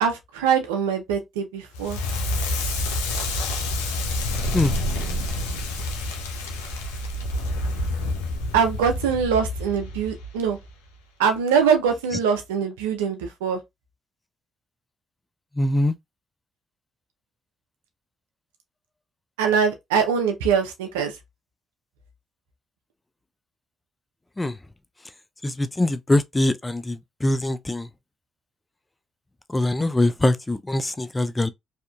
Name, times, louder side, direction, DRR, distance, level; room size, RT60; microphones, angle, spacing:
voice 1, 0.0-2.0 8.5-10.6 11.2-13.6 19.4-21.1, right 7 dB, 90° right, 0.5 m, -23 dB
Crackle, 1.7-10.7, left 1 dB, 90° left, 0.5 m, -28 dB
voice 2, 15.6-15.9 24.4-24.5 25.4-27.0 27.2-27.9 29.5-31.5, left 1 dB, 20° left, 0.4 m, -22 dB
2.7 x 2.4 x 2.3 m
hypercardioid pair, 45°, 0 cm